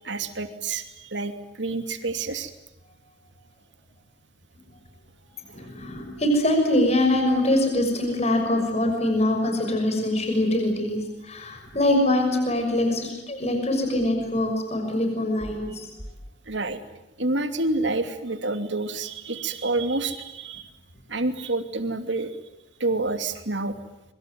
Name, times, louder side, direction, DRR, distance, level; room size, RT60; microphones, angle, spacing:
voice 1, 0.0-2.5 5.5-5.7 10.2-10.3 16.5-16.8 17.2-20.7 21.1-22.3 22.8-23.8, right 2 dB, 80° right, 8 dB, 2.9 m, -28 dB
voice 2, 5.5-11.0 11.3-15.8, left 1 dB, 35° left, 4 dB, 6.3 m, -23 dB
26.0 x 24.0 x 9.4 m, 0.95 s
head